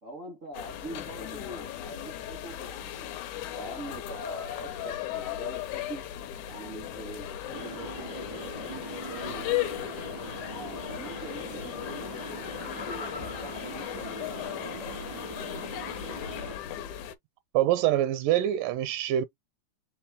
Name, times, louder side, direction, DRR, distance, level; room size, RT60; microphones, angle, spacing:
voice 1, 0.0-3.1 3.4-6.1 6.4-9.7 10.4-15.3, right 2 dB, 55° right, 0.8 m, -44 dB
sound 1, 0.5-17.2, left 12 dB, 75° left, 2.0 m, -37 dB
sound 2, 7.5-16.5, right 3 dB, 25° right, 0.6 m, -42 dB
Laughter, 12.0-14.7 15.1-15.2, left 3 dB, 50° left, 0.8 m, -45 dB
voice 2, 17.5-19.3, right 12 dB, 85° right, 2.2 m, -25 dB
5.0 x 2.9 x 3.4 m
omnidirectional pair, 3.9 m